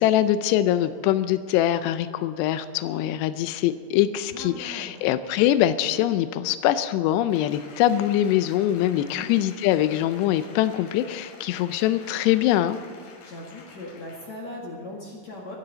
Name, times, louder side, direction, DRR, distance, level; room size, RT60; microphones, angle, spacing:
voice 1, 0.0-12.8, left 12 dB, 90° left, 11 dB, 2.4 m, -23 dB
voice 2, 4.3-5.0 8.9-9.3 13.2-15.6, left 2 dB, 50° left, -2 dB, 2.3 m, -39 dB
Applause, 7.3-14.4 14.9-15.0, left 4 dB, 70° left, 4.6 m, -48 dB
23.5 x 15.0 x 4.0 m, 2.1 s
omnidirectional pair, 5.6 m